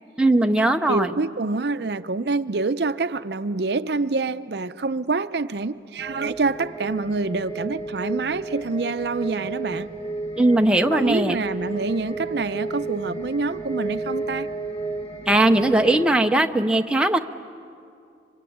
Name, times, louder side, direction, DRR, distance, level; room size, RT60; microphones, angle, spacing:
voice 1, 0.2-1.1 10.4-11.4 15.3-17.2, right 1 dB, 5° right, 0.6 m, -19 dB
voice 2, 0.9-9.9 10.9-14.5, right 3 dB, 65° right, 0.6 m, -26 dB
sound 1, 6.0-16.1, right 3 dB, 35° left, 1.3 m, -32 dB
27.0 x 25.5 x 8.6 m
head